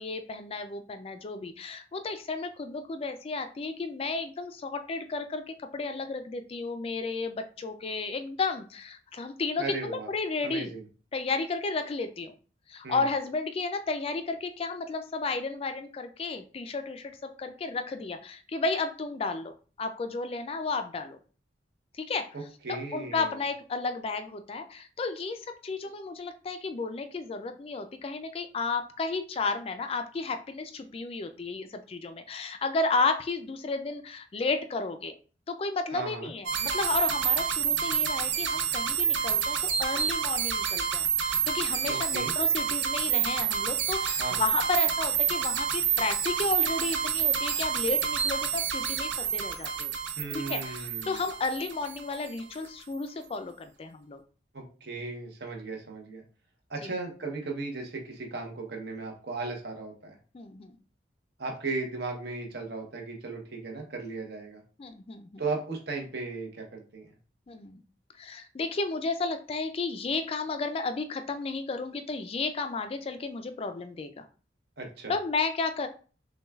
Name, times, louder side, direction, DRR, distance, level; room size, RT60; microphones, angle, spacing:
voice 1, 0.0-10.7 11.1-12.3 12.7-21.2 21.9-22.3 22.9-35.1 35.5-49.9 50.3-54.2 56.8-56.9 60.3-60.8 64.8-65.4 67.5-67.8 68.2-74.2 75.1-75.9, left 3 dB, 35° left, 8 dB, 0.3 m, -33 dB
voice 2, 9.6-10.1 10.4-10.8 12.8-13.0 22.3-23.3 35.9-36.3 41.9-42.3 44.2-44.4 50.2-51.2 54.5-56.2 56.7-60.2 61.4-64.6 65.4-67.1 74.8-75.1, right 3 dB, 65° right, 2 dB, 0.9 m, -36 dB
sound 1, 36.5-52.3, right 8 dB, 90° right, 0.5 m, -28 dB
6.1 x 2.3 x 2.3 m, 0.39 s
head